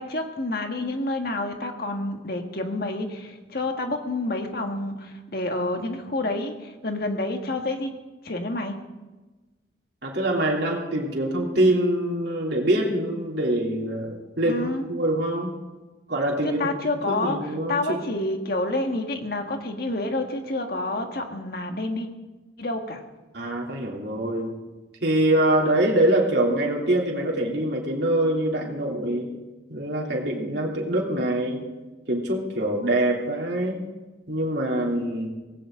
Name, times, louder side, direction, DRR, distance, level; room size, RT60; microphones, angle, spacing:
voice 1, 0.0-7.9 8.2-8.8 14.4-14.8 16.6-22.1 22.6-23.0, left 2 dB, 55° left, 4 dB, 1.7 m, -28 dB
voice 2, 10.0-15.5 16.1-16.7 17.1-18.1 23.3-24.5 25.0-29.3 29.7-31.6 32.1-33.8 34.3-35.3, right 1 dB, 60° right, -2 dB, 3.2 m, -24 dB
18.5 x 17.0 x 3.8 m, 1.2 s
head